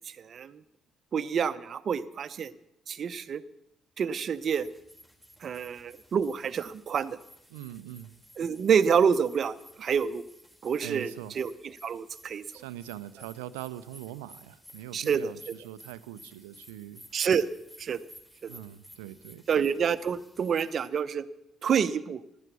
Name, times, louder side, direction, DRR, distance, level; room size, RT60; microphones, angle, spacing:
voice 1, 0.2-0.6 1.1-2.5 2.9-3.4 4.0-4.7 5.4-7.2 8.4-10.2 10.6-12.4 14.9-15.3 17.1-17.5 17.8-18.0 18.4-18.6 19.5-21.2 21.6-22.2, right 7 dB, 55° right, 14 dB, 0.8 m, -27 dB
sound 1, 4.3-20.9, equal, 15° left, 4.2 m, -55 dB
voice 2, 7.5-8.2 10.8-11.4 12.5-17.0 18.5-19.4, right 13 dB, 85° right, 14 dB, 0.6 m, -42 dB
15.0 x 12.0 x 6.9 m, 0.80 s
hypercardioid pair, 50°, 0 cm